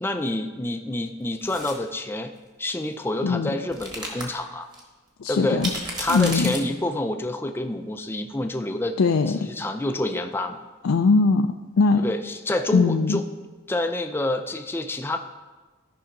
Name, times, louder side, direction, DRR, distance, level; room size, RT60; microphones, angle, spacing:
voice 1, 0.0-2.3 2.6-4.7 5.3-5.6 6.0-9.0 9.4-10.6 12.0-13.2 13.7-15.2, left 1 dB, 10° left, 6 dB, 0.4 m, -27 dB
sound 1, 1.4-1.8 3.7-4.2 4.7-4.8 5.6-6.6, right 1 dB, 20° right, 1.4 m, -32 dB
voice 2, 3.2-3.5 5.2-5.7 6.1-6.5 9.0-9.4 10.8-12.1 12.7-13.2, left 4 dB, 85° left, 6 dB, 0.4 m, -20 dB
13.5 x 5.5 x 3.8 m, 1.3 s
head